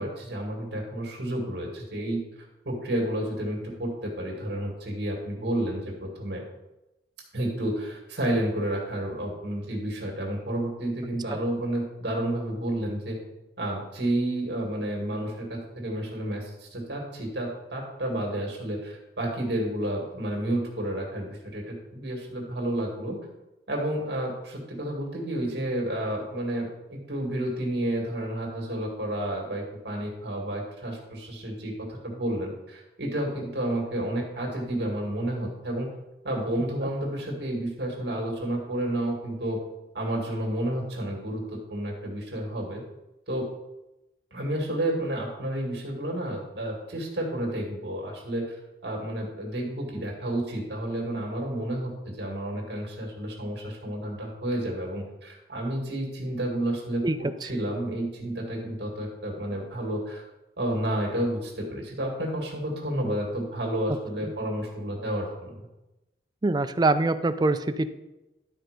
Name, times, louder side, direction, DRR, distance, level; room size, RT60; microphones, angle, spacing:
voice 1, 0.0-2.2 2.7-6.4 7.3-13.2 13.6-23.2 23.7-35.9 36.2-39.6 39.9-41.4 41.7-42.8 43.3-43.5 44.3-48.6 48.8-60.2 60.6-65.7, right 1 dB, 65° right, 1 dB, 2.2 m, -31 dB
voice 2, 66.4-67.9, right 2 dB, 25° right, 10 dB, 0.4 m, -24 dB
12.0 x 4.4 x 5.1 m, 0.98 s
head